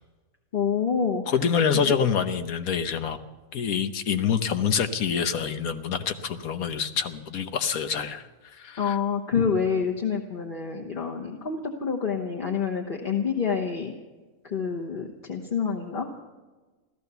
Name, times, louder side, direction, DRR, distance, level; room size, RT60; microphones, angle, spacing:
voice 1, 0.5-1.2 8.8-13.9 14.4-16.1, left 6 dB, 40° left, 0 dB, 1.2 m, -27 dB
voice 2, 1.3-3.2 3.5-9.0, left 7 dB, 70° left, 9 dB, 1.4 m, -26 dB
15.5 x 13.5 x 6.9 m, 1.2 s
omnidirectional pair, 1.6 m